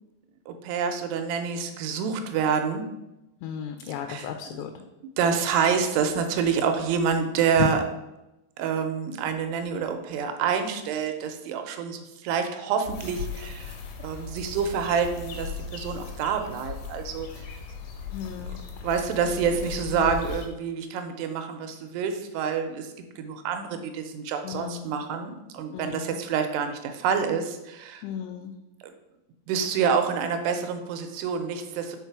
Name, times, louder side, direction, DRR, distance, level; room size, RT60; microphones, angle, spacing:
voice 1, 0.5-2.9 4.1-4.6 5.2-7.8 8.6-17.3 18.8-22.9 23.2-28.0 29.5-32.0, right 6 dB, 90° right, 6 dB, 2.8 m, -27 dB
voice 2, 3.4-4.8 7.6-7.7 18.1-18.9 19.9-20.1 24.4-24.9 25.7-26.2 28.0-28.5, left 10 dB, 90° left, 5 dB, 2.7 m, -34 dB
sound 1, 12.8-20.5, left 5 dB, 75° left, 2.2 m, -37 dB
5.7 x 4.7 x 4.6 m, 0.94 s
omnidirectional pair, 4.7 m